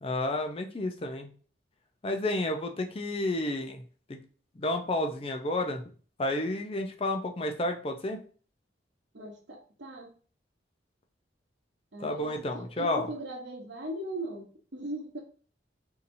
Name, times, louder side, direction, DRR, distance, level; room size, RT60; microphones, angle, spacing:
voice 1, 0.0-1.3 2.0-3.8 4.1-4.2 4.6-5.8 6.2-8.2 12.0-13.1, left 1 dB, 30° left, 4 dB, 0.5 m, -31 dB
voice 2, 9.1-10.1 11.9-15.2, right 1 dB, 75° right, 2 dB, 1.0 m, -39 dB
4.0 x 2.8 x 2.6 m, 0.40 s
head